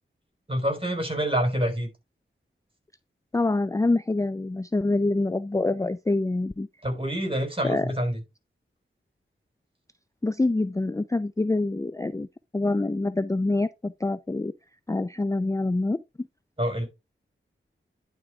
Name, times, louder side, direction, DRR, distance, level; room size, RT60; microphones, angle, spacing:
voice 1, 0.5-1.9 6.8-8.2 16.6-16.9, equal, 25° right, 4.5 m, -27 dB
voice 2, 3.3-6.7 7.6-7.9 10.2-12.3 12.5-14.5 14.9-16.0, left 2 dB, 15° left, 0.5 m, -26 dB
10.5 x 4.6 x 3.6 m
cardioid pair, 45°, 21 cm